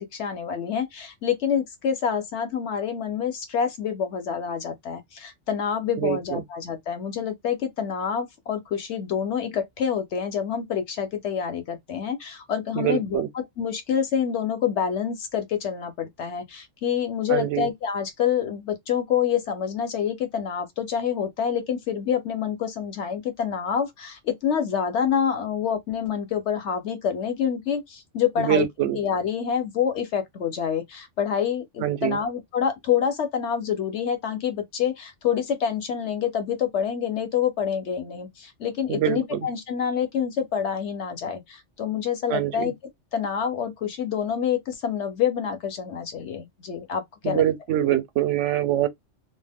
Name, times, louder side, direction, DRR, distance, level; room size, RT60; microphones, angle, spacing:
voice 1, 0.0-28.7 28.9-42.7 43.1-47.4, left 8 dB, 65° left, 1.0 m, -27 dB
voice 2, 12.8-13.3 17.3-17.7 28.4-29.0 31.8-32.2 38.9-39.4 42.3-42.7 47.2-48.9, right 12 dB, 75° right, 0.9 m, -24 dB
2.4 x 2.1 x 3.3 m
omnidirectional pair, 1.3 m